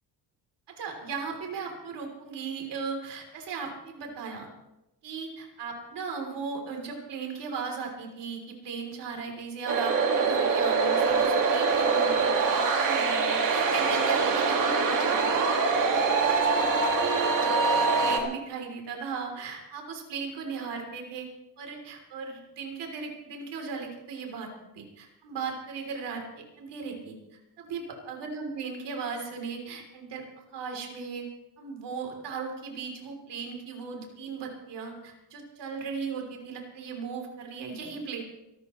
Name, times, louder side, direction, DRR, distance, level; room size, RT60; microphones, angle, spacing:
voice 1, 0.7-4.5 5.0-15.4 15.8-15.9 16.2-17.5 17.8-21.3 21.6-27.1 27.6-30.2 30.5-31.3 31.6-38.2, right 5 dB, 75° right, 2 dB, 3.5 m, -37 dB
sound 1, 9.7-18.2, right 4 dB, 45° right, 2.1 m, -24 dB
25.5 x 13.0 x 3.2 m, 0.92 s
cardioid pair, 170°, 42 cm